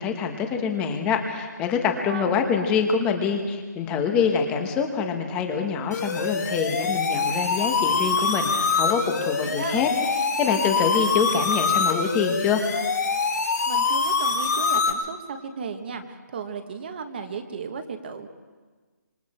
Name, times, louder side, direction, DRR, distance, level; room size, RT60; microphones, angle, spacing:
voice 1, 0.0-9.9 10.2-12.6, left 6 dB, 10° left, 5 dB, 1.3 m, -25 dB
voice 2, 1.9-2.4 9.4-9.9 13.7-18.3, right 5 dB, 35° right, 7 dB, 1.6 m, -35 dB
sound 1, 5.9-14.9, left 4 dB, 65° left, 2.8 m, -24 dB
26.5 x 26.0 x 4.5 m, 1.4 s
hypercardioid pair, 170°, 10 cm